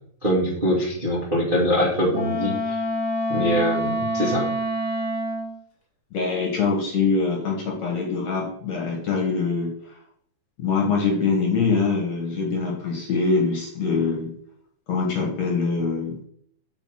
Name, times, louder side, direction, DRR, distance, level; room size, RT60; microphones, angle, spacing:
voice 1, 0.2-2.5 3.3-4.5, equal, 20° right, -5 dB, 1.5 m, -23 dB
Wind instrument woodwind instrument, 2.1-5.6, equal, 30° left, 1.8 m, -26 dB
voice 2, 6.1-9.7 10.6-14.3 14.9-16.2, left 4 dB, 50° left, -1 dB, 2.5 m, -24 dB
7.0 x 5.0 x 6.4 m, 0.65 s
omnidirectional pair, 4.6 m